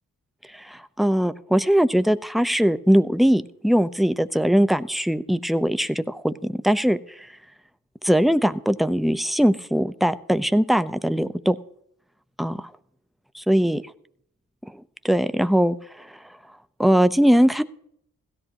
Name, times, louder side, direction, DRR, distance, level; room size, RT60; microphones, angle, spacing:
voice 1, 0.5-7.3 8.0-11.6 12.4-12.7 13.4-13.8 14.7-16.1 16.8-17.6, equal, ahead, 11 dB, 0.7 m, -21 dB
16.5 x 13.5 x 3.0 m, 0.69 s
supercardioid pair, 40°, 37 cm